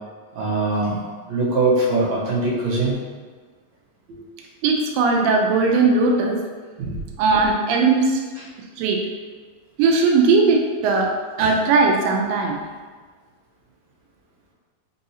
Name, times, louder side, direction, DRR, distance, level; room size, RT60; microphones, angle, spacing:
voice 1, 0.3-1.0 1.3-3.0 4.1-4.2 6.8-6.9 11.4-11.5, right 2 dB, 65° right, -8 dB, 1.9 m, -22 dB
voice 2, 4.6-6.4 7.2-8.2 8.8-9.1 9.8-11.1 11.4-12.6, right 4 dB, 85° right, 1 dB, 2.2 m, -18 dB
5.4 x 2.7 x 2.7 m, 1.5 s
omnidirectional pair, 4.0 m